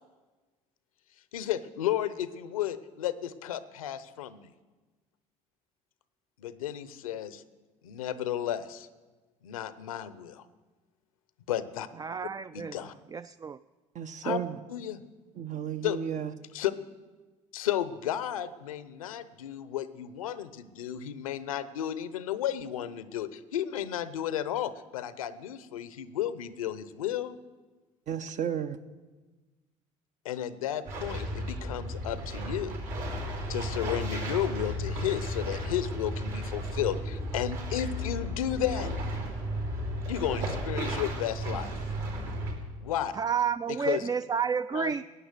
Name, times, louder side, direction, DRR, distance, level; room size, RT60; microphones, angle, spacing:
voice 1, 1.3-4.5 6.4-7.4 7.8-8.9 9.4-10.4 11.5-11.9 12.5-12.9 14.2-14.4 14.7-15.0 15.8-16.0 16.5-16.7 17.5-27.4 30.2-32.8 33.5-38.9 40.1-41.8 42.8-43.2 43.7-44.0 44.7-44.9, left 11 dB, 85° left, 15 dB, 0.7 m, -33 dB
voice 2, 12.0-12.8 13.1-13.6 43.1-45.0, right 6 dB, 20° right, 14 dB, 0.3 m, -30 dB
voice 3, 13.9-14.6 15.4-16.3 28.1-28.8, right 8 dB, 45° right, 10 dB, 0.7 m, -33 dB
sound 1, 30.8-42.5, equal, 60° right, 5.0 m, -34 dB
15.5 x 9.3 x 6.7 m, 1.3 s
hypercardioid pair, 65°, 17 cm